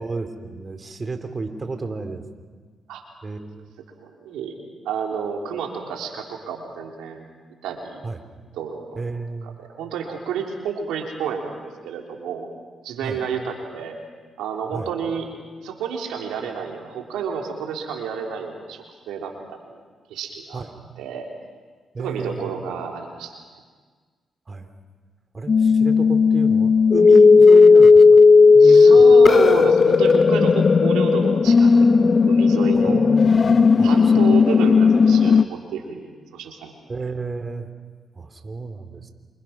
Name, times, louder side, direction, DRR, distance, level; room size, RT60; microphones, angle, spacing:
voice 1, 0.0-2.2 3.2-3.7 8.0-8.2 8.9-9.6 13.0-13.2 14.7-14.9 20.5-20.7 21.9-22.5 24.5-24.7 25.3-28.2 28.5-29.1 32.8-34.4 36.9-37.7 38.1-39.1, right 3 dB, 40° right, 7 dB, 3.0 m, -32 dB
voice 2, 4.0-4.6 4.9-7.3 7.6-8.0 8.5-9.0 9.4-12.5 12.8-14.0 14.4-15.3 15.6-19.8 20.1-20.6 21.0-21.3 22.0-23.4 28.6-33.0 33.8-36.1 36.3-36.7, right 6 dB, 85° right, 1 dB, 3.7 m, -30 dB
sound 1, 25.5-35.4, left 4 dB, 45° left, 0.6 m, -13 dB
27.5 x 26.0 x 6.0 m, 1.5 s
supercardioid pair, 50°, 0 cm